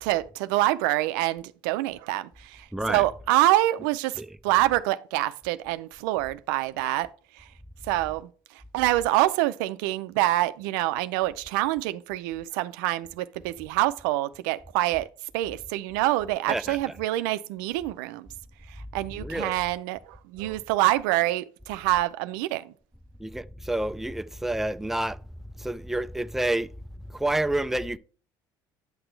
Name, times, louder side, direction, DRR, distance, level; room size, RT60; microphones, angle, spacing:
voice 1, 0.0-7.1 7.9-8.3 8.7-15.1 15.3-18.3 18.9-20.0 20.3-22.6, right 16 dB, 85° right, 0.5 m, -26 dB
voice 2, 2.7-3.0 4.2-4.3 16.5-16.8 19.2-19.6 23.2-25.2 25.6-26.7 27.1-28.0, right 1 dB, 5° right, 0.4 m, -28 dB
9.6 x 6.1 x 3.3 m
supercardioid pair, 80°, 10 cm